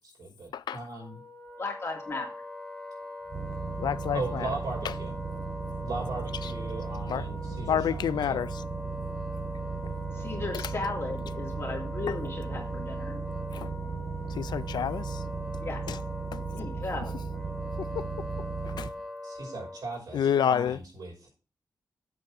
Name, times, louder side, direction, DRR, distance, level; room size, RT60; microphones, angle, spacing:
voice 1, 0.2-1.2 4.1-5.1 5.8-8.4 19.2-21.3, right 3 dB, 60° right, 5.6 m, -38 dB
Wind instrument woodwind instrument, 0.9-20.1, left 2 dB, 5° left, 1.9 m, -42 dB
voice 2, 1.6-2.3 10.1-13.3 15.6-15.8 16.6-17.1, left 3 dB, 35° left, 2.8 m, -35 dB
sound 1, 3.3-18.9, right 5 dB, 35° right, 0.6 m, -36 dB
voice 3, 3.8-4.5 7.1-7.2 7.6-8.5 13.5-13.7 14.4-15.0 15.9-16.0 16.3-16.4 18.0-18.1 18.8-18.9 20.1-20.8, left 9 dB, 80° left, 0.4 m, -28 dB
8.2 x 4.2 x 6.5 m
wide cardioid pair, 150°, 7 cm